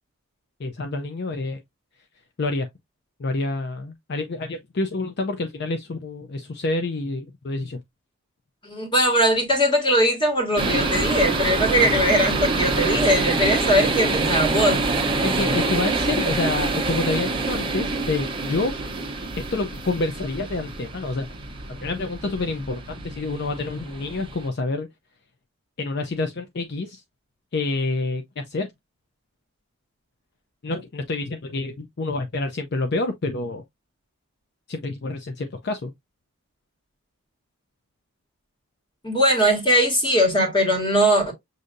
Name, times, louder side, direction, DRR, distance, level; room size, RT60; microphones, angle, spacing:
voice 1, 0.6-1.6 2.4-2.7 3.2-7.8 15.2-18.7 19.4-21.3 21.7-24.9 25.8-27.0 27.5-28.7 30.6-33.6 34.7-35.9, left 3 dB, 50° left, 0.5 m, -28 dB
voice 2, 8.6-14.8 39.0-41.3, equal, 20° left, 1.5 m, -20 dB
sound 1, 10.6-24.5, right 3 dB, 20° right, 0.8 m, -26 dB
6.5 x 2.7 x 2.5 m
head